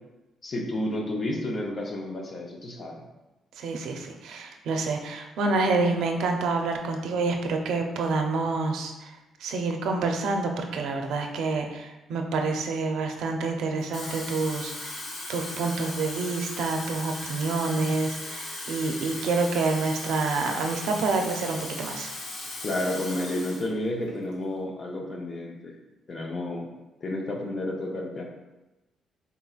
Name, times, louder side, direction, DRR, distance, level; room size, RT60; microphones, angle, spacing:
voice 1, 0.4-3.0 22.6-25.8 26.1-26.7 27.0-28.2, left 1 dB, 45° left, 0 dB, 0.7 m, -31 dB
voice 2, 3.6-9.1 9.4-15.0 15.3-22.1, right 3 dB, 80° right, 3 dB, 0.5 m, -28 dB
Water tap faucet / Fill (with liquid), 13.8-23.7 24.1-24.3, left 2 dB, 85° left, 1.0 m, -37 dB
4.0 x 3.9 x 2.4 m, 1.0 s
cardioid pair, 90°, 0 cm